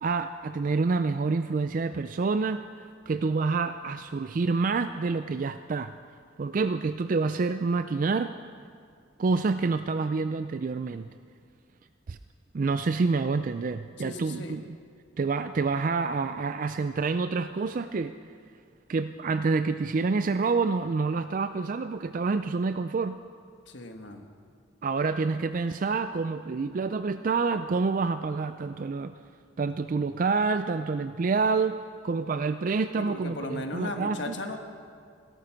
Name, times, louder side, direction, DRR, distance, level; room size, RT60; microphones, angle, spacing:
voice 1, 0.0-2.7 3.1-5.9 6.4-8.3 9.2-11.1 12.1-12.2 12.5-14.8 15.2-18.1 18.9-23.2 24.8-29.1 29.6-34.4, right 4 dB, 45° right, 10 dB, 0.4 m, -27 dB
voice 2, 14.0-14.6 23.7-24.2 33.0-34.6, left 1 dB, 65° left, 5 dB, 1.4 m, -36 dB
17.0 x 13.0 x 5.9 m, 2.2 s
head